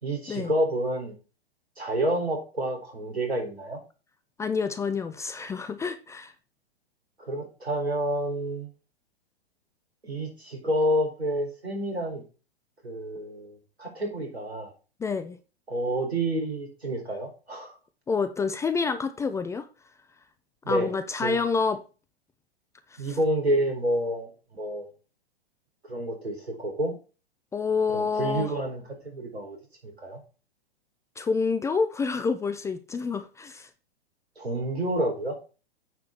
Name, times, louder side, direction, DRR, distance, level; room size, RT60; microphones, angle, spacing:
voice 1, 0.0-1.1 1.8-3.8 7.2-8.7 10.0-12.2 12.8-14.7 15.7-17.7 20.6-20.9 21.2-21.3 23.0-24.9 25.9-26.9 27.9-29.6 29.8-30.2 34.4-35.4, right 1 dB, 90° right, 4.6 m, -29 dB
voice 2, 4.4-6.3 15.0-15.4 18.1-19.7 20.7-21.8 22.9-23.2 27.5-28.5 31.2-33.7, left 5 dB, 10° left, 0.5 m, -28 dB
9.2 x 4.9 x 4.4 m
figure-of-eight pair, 110°, 31 cm